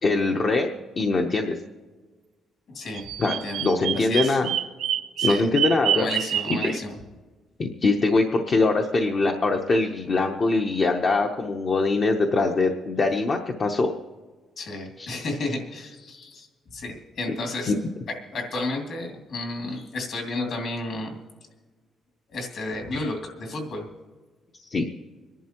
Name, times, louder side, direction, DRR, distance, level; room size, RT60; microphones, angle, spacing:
voice 1, 0.0-1.6 3.2-4.5 5.2-6.1 6.5-6.8 7.6-13.9 15.0-15.1 17.7-17.8 24.6-24.9, left 3 dB, 35° left, 3 dB, 0.8 m, -23 dB
voice 2, 2.7-3.7 3.9-4.4 5.2-5.5 5.9-7.0 14.6-17.7 18.3-21.2 22.3-23.9, left 2 dB, 50° left, 1 dB, 2.5 m, -32 dB
Bird vocalization bird call bird song, 2.9-6.8, right 10 dB, 80° right, 0.6 m, -27 dB
26.0 x 11.0 x 3.0 m, 1.4 s
cardioid pair, 160°, 0 cm